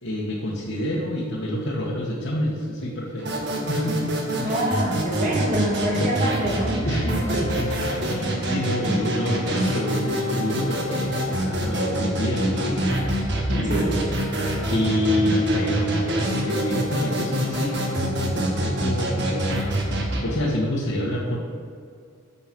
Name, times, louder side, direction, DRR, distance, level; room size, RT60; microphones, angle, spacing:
voice 1, 0.0-4.6 6.0-6.1 6.8-12.9 13.5-14.0 14.7-21.4, equal, 65° left, -5 dB, 1.6 m, -27 dB
sound 1, 3.2-20.2, right 1 dB, 50° right, 1.8 m, -26 dB
voice 2, 4.4-6.8 7.0-7.4 13.7-13.9, equal, 35° right, -4 dB, 2.3 m, -25 dB
9.7 x 6.9 x 6.0 m, 2.3 s
head